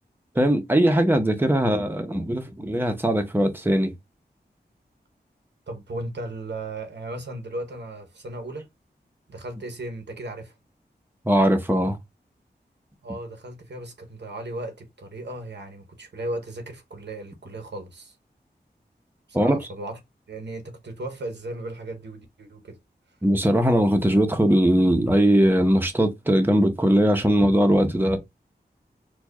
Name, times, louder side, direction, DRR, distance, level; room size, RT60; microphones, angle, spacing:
voice 1, 0.4-3.9 11.3-12.0 19.3-19.6 23.2-28.2, right 1 dB, 10° right, 0.7 m, -20 dB
voice 2, 5.7-8.7 9.3-10.5 13.0-18.1 19.4-20.0 20.3-22.8, right 1 dB, 85° right, 0.9 m, -36 dB
4.4 x 2.3 x 2.3 m
wide cardioid pair, 75°, 18 cm